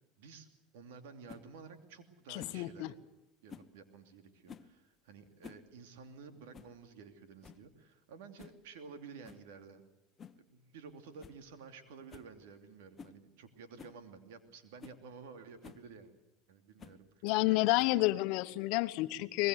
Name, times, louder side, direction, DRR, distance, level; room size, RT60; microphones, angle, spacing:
voice 1, 0.2-0.5 0.7-3.0 3.4-9.8 10.4-16.1 16.5-17.4, right 5 dB, 85° right, 7 dB, 2.9 m, -52 dB
sound 1, 1.3-1.5 2.4-2.6 3.5-3.7 4.5-4.7 5.2-5.7 5.9-6.0 6.5-6.8 7.1-7.2 7.4-7.7 8.4-8.6 9.2-9.5 10.2-10.4 10.8-10.9 11.2-11.4 11.7-11.8 12.1-12.3 13.0-13.2 13.8-14.0 14.5-14.6 14.8-15.0 15.6-15.8 16.8-17.0 17.8-18.1, left 6 dB, 30° left, 1.2 m, -52 dB
voice 2, 2.3-2.9 17.2-19.5, left 19 dB, 70° left, 12 dB, 1.0 m, -30 dB
23.0 x 20.5 x 8.1 m, 0.89 s
supercardioid pair, 105°, 0 cm